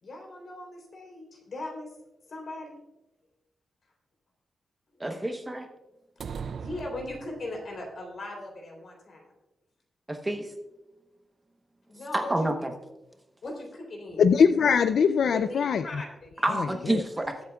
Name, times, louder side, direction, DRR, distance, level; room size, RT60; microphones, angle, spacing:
voice 1, 0.0-1.9 2.3-2.7 5.0-5.1 6.2-9.3 11.9-12.3 13.4-14.2 15.3-15.4 15.8-16.6, left 2 dB, 50° left, 1 dB, 3.3 m, -39 dB
voice 2, 5.0-5.7 10.1-10.5 12.1-12.7 16.4-17.4, right 1 dB, 15° right, 5 dB, 0.9 m, -28 dB
sound 1, 6.2-7.8, right 6 dB, 60° right, 0.3 m, -39 dB
voice 3, 14.2-15.8 16.6-17.0, left 6 dB, 75° left, 10 dB, 0.4 m, -22 dB
21.0 x 8.0 x 2.3 m, 1.0 s
wide cardioid pair, 150°, 0 cm